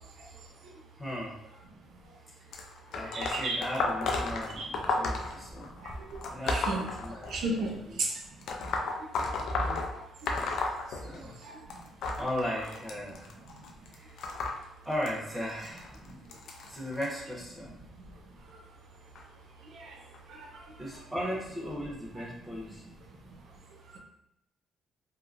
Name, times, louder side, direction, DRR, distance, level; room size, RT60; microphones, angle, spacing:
voice 1, 1.0-1.3 2.2-2.3 2.9-5.7 6.3-7.3 7.7-7.8 10.9-11.4 12.2-13.3 13.9-14.3 14.8-16.2 16.7-17.7 20.8-22.9, equal, ahead, -5 dB, 1.1 m, -37 dB
sound 1, 2.5-7.7 8.4-11.4 11.7-17.1 17.9-18.1 19.2-19.3 20.1-20.2 20.9-21.0, left 3 dB, 75° left, 0.4 m, -33 dB
voice 2, 3.1-3.6 4.5-4.7 5.8-6.2 6.4-6.9 7.3-8.2 8.6-8.9 9.5-10.3 11.2-11.6 19.6-20.0 20.3-21.0 22.1-22.3 22.7-22.8 23.9-24.0, right 3 dB, 70° right, 1 dB, 0.6 m, -36 dB
2.9 x 2.3 x 2.5 m, 0.81 s
cardioid pair, 75°, 0 cm